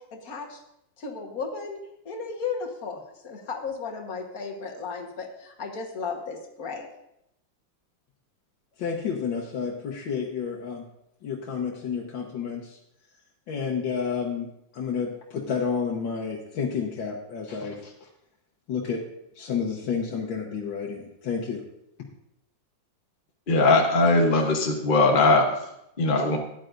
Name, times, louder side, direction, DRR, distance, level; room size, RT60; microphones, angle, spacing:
voice 1, 0.1-0.6 1.0-1.8 2.1-6.9, left 5 dB, 50° left, 2 dB, 1.7 m, -34 dB
voice 2, 8.8-10.8 11.2-12.8 13.5-14.5 14.7-17.9 18.7-19.0 19.4-21.6, left 6 dB, 80° left, -2 dB, 1.8 m, -30 dB
voice 3, 23.5-25.5 26.0-26.4, left 2 dB, 35° left, 1 dB, 1.0 m, -20 dB
14.0 x 10.0 x 2.6 m, 0.80 s
omnidirectional pair, 2.0 m